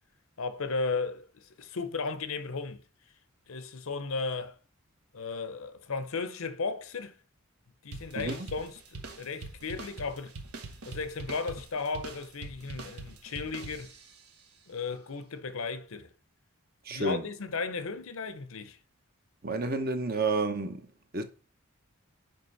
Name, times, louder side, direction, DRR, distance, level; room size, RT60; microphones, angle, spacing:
voice 1, 0.4-2.8 3.5-4.6 5.1-7.2 7.8-10.3 10.8-13.9 14.7-16.1 16.9-18.8, left 4 dB, 70° left, 0.7 m, -35 dB
sound 1, 7.9-14.3, right 3 dB, 90° right, 1.3 m, -44 dB
voice 2, 16.9-17.2 19.4-20.8 21.1-21.2, right 3 dB, 40° right, 0.9 m, -30 dB
5.3 x 5.2 x 5.7 m
head